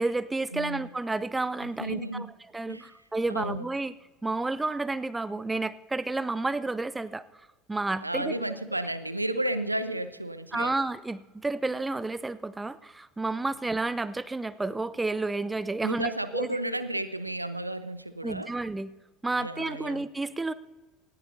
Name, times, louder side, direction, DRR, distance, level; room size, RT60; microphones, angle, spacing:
voice 1, 0.0-2.3 2.5-3.9 4.2-7.3 7.7-8.6 10.5-16.6 18.2-18.9 19.2-20.5, right 2 dB, 10° right, 16 dB, 0.5 m, -31 dB
voice 2, 0.5-0.9 1.6-2.3 2.7-2.9 3.3-3.7 8.0-10.7 15.8-18.5 19.4-20.0, right 1 dB, 90° right, 14 dB, 0.5 m, -32 dB
19.0 x 15.0 x 2.7 m, 1.2 s
figure-of-eight pair, 70°, 0 cm